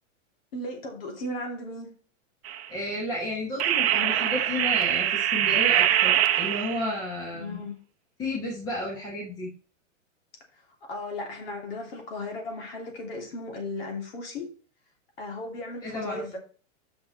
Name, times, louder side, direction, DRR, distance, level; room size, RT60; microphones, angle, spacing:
voice 1, 0.5-1.9 7.3-7.8 10.9-14.5 15.2-16.4, left 2 dB, 50° left, 2 dB, 2.8 m, -36 dB
sound 1, 2.4-2.7 3.6-7.0, right 11 dB, 55° right, 0.8 m, -23 dB
voice 2, 2.7-7.6 8.2-9.5 15.8-16.4, left 1 dB, 10° left, -3 dB, 1.2 m, -32 dB
6.2 x 5.2 x 6.6 m, 0.39 s
supercardioid pair, 180°, 38 cm